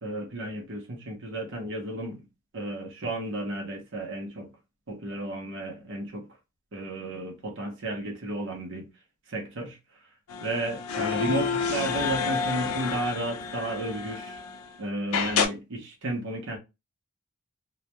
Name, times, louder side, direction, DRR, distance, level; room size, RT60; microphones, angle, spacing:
voice 1, 0.0-2.2 2.5-4.5 4.9-6.3 6.7-8.9 9.3-9.8 10.4-14.4 14.8-16.6, right 1 dB, 55° right, 0.7 m, -33 dB
sound 1, 10.3-14.7 15.1-15.5, left 6 dB, 70° left, 0.4 m, -29 dB
2.2 x 2.2 x 2.8 m
head